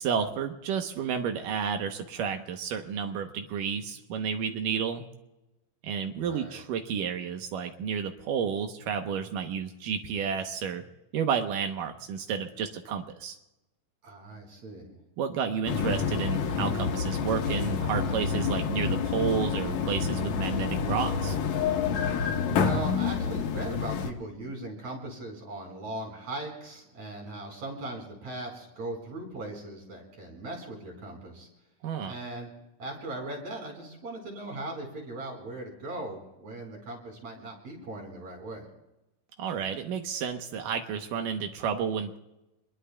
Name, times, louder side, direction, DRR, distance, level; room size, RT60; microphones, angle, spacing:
voice 1, 0.0-5.0 5.8-10.8 11.1-13.4 15.2-21.4 31.8-32.1 39.4-42.2, right 7 dB, 80° right, 5 dB, 2.6 m, -31 dB
voice 2, 6.2-6.6 14.0-15.0 22.3-31.5 32.0-32.5 32.8-38.7, right 2 dB, 55° right, 1 dB, 5.8 m, -39 dB
sound 1, 15.7-24.1, left 6 dB, 65° left, 2.5 m, -28 dB
27.5 x 22.0 x 2.3 m, 0.96 s
omnidirectional pair, 3.8 m